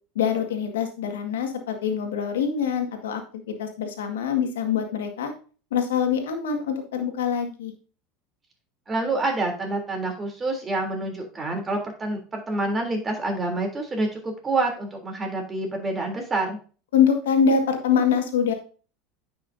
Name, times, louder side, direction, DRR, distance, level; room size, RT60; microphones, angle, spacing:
voice 1, 0.2-3.2 3.5-5.3 5.7-7.7 16.9-18.5, left 7 dB, 90° left, 4 dB, 1.8 m, -24 dB
voice 2, 8.9-16.6, right 2 dB, 20° right, 2 dB, 3.3 m, -27 dB
10.0 x 5.9 x 2.7 m, 0.37 s
hypercardioid pair, 100°, 0 cm